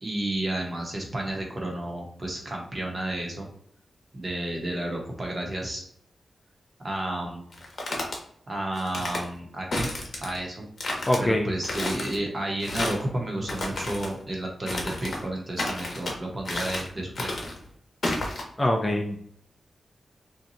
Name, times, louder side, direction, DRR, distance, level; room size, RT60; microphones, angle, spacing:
voice 1, 0.0-3.5 4.1-5.9 6.8-7.4 8.5-9.9 10.2-10.6 11.2-17.3, right 1 dB, 30° right, 0 dB, 0.9 m, -31 dB
sound 1, 7.5-8.2 8.7-9.2 9.7-10.4 10.8-11.2 11.6-12.2 12.6-13.1 13.4-14.1 14.7-15.2 15.6-16.1 16.4-16.9 17.1-17.6 18.0-18.4, left 2 dB, 50° left, 0.9 m, -31 dB
voice 2, 11.1-11.5 18.6-19.2, left 1 dB, 20° left, 1 dB, 0.4 m, -23 dB
2.8 x 2.2 x 3.8 m, 0.65 s
wide cardioid pair, 140°, 0 cm